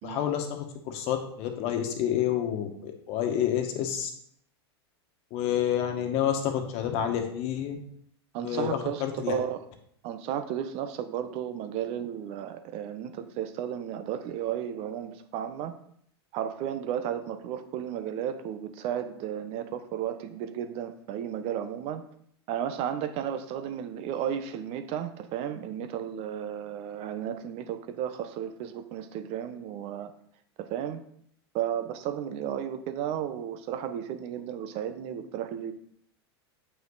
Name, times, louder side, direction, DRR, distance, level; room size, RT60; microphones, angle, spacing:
voice 1, 0.0-4.1 5.3-7.8 8.4-9.3, left 10 dB, 45° left, 5 dB, 1.6 m, -29 dB
voice 2, 8.3-9.6 10.0-15.7 16.3-22.0 22.5-30.1 30.6-31.0 31.5-35.7, right 9 dB, 45° right, 9 dB, 1.0 m, -33 dB
8.6 x 5.8 x 4.0 m, 0.65 s
hypercardioid pair, 95°, 14 cm